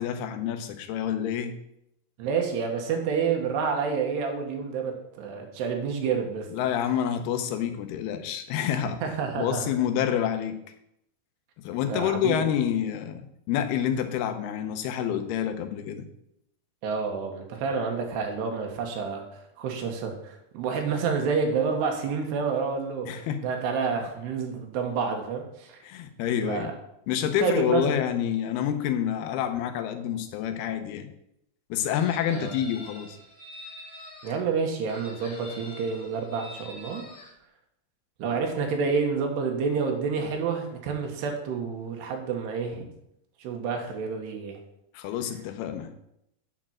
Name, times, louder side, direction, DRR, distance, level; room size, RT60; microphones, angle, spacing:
voice 1, 0.0-1.6 6.5-9.0 9.4-10.6 11.6-16.1 23.1-23.5 25.8-26.7 27.1-31.1 31.7-33.2 44.9-46.0, left 9 dB, 80° left, 8 dB, 2.7 m, -28 dB
voice 2, 2.2-6.5 9.0-9.7 11.9-12.5 16.8-19.2 19.6-25.8 26.4-26.7 27.4-27.9 32.3-32.5 34.2-37.0 38.2-42.9 43.4-44.6, right 5 dB, 90° right, 3 dB, 3.4 m, -29 dB
Chicken rooster, 31.9-34.4 34.9-37.3, left 1 dB, 40° left, 1.4 m, -45 dB
8.9 x 4.4 x 7.3 m, 0.78 s
omnidirectional pair, 4.7 m